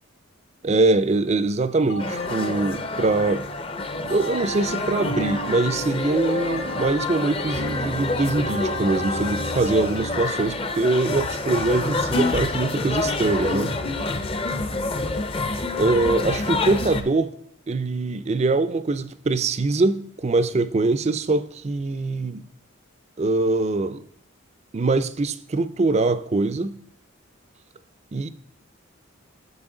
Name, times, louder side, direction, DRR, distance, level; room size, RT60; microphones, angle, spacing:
voice 1, 0.6-3.5 4.0-13.7 15.8-17.3 17.7-22.4 23.2-24.0 24.7-26.8 28.1-28.3, right 3 dB, 30° right, 0.4 m, -23 dB
sound 1, 1.9-3.6 4.1-5.8 6.3-7.9 8.4-10.1, right 1 dB, 75° left, 1.0 m, -38 dB
sound 2, 2.0-17.0, left 2 dB, 25° left, 0.6 m, -27 dB
8.0 x 6.8 x 3.8 m
head